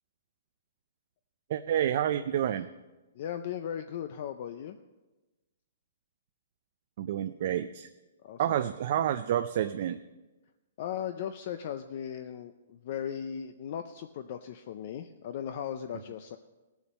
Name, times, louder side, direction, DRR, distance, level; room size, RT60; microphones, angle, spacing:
voice 1, 1.5-2.7 7.0-7.9 8.4-10.0, right 10 dB, 35° right, 9 dB, 0.3 m, -29 dB
voice 2, 3.1-4.8 8.2-8.6 10.8-16.4, left 9 dB, 35° left, 9 dB, 0.4 m, -37 dB
17.0 x 7.1 x 5.3 m, 1.1 s
hypercardioid pair, 180°, 0 cm